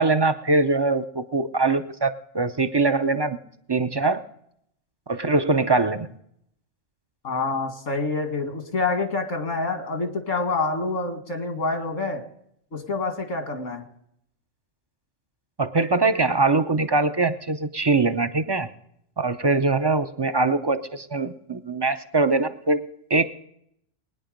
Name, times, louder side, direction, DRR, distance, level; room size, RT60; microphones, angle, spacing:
voice 1, 0.0-3.4 3.7-4.2 5.1-6.1 15.6-18.7 19.2-23.2, right 3 dB, 35° right, 10 dB, 0.4 m, -22 dB
voice 2, 7.2-12.2 12.7-13.8, left 3 dB, 80° left, 6 dB, 2.2 m, -27 dB
20.5 x 10.0 x 5.1 m, 0.73 s
omnidirectional pair, 1.3 m